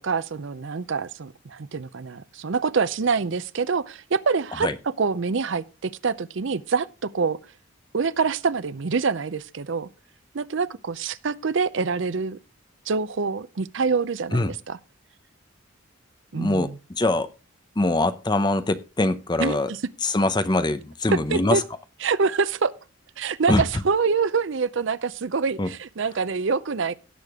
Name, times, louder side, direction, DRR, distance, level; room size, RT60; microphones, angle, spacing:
voice 1, 0.0-7.4 7.9-9.9 10.3-12.4 12.9-14.4 14.7-14.8 16.3-16.8 19.4-19.8 21.3-21.6 22.0-22.7 23.2-27.0, right 5 dB, 60° right, 0.5 m, -25 dB
voice 2, 16.3-17.3 17.8-19.7 20.0-21.6 23.5-23.6 25.6-25.7, left 2 dB, 20° left, 0.7 m, -23 dB
17.0 x 6.7 x 3.6 m
head